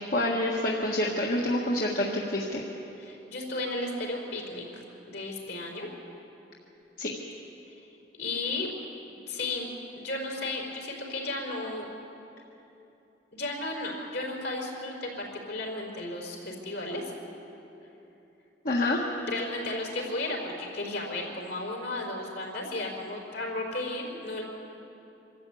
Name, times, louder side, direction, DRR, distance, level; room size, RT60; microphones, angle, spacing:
voice 1, 0.0-2.6 7.0-7.1 18.6-19.0, left 1 dB, 55° left, -2 dB, 1.6 m, -27 dB
voice 2, 3.0-5.9 8.1-8.7 9.3-11.9 13.3-17.0 19.3-24.4, left 2 dB, 75° left, -1 dB, 4.5 m, -34 dB
24.5 x 13.5 x 8.5 m, 3.0 s
head